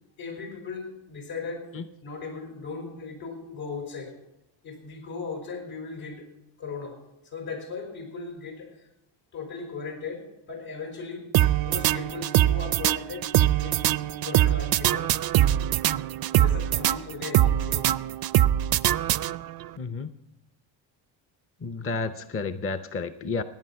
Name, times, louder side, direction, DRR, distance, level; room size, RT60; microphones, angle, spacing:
voice 1, 0.2-4.2 4.6-6.3 6.6-8.9 9.3-11.3 11.6-13.3 13.6-13.8 14.2-15.1 16.4-17.9, left 4 dB, 70° left, 3 dB, 5.0 m, -37 dB
sound 1, 11.3-19.7, right 13 dB, 50° right, 0.5 m, -23 dB
voice 2, 19.8-20.1 21.6-23.4, left 4 dB, 25° left, 10 dB, 0.7 m, -31 dB
17.5 x 9.7 x 5.7 m, 0.92 s
cardioid pair, 90°, 49 cm